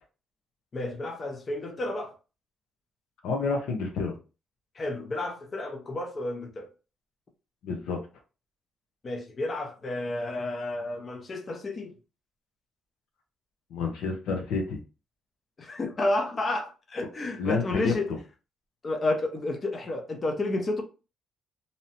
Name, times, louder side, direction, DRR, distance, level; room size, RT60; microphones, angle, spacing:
voice 1, 0.7-2.1 4.8-6.7 9.0-11.9 15.6-18.1 18.8-20.8, left 2 dB, 40° left, 0.5 m, -31 dB
voice 2, 3.2-4.1 7.6-8.0 13.7-14.8 17.4-18.2, left 4 dB, 85° left, 0.6 m, -29 dB
2.7 x 2.0 x 2.7 m
cardioid pair, 90°, 0 cm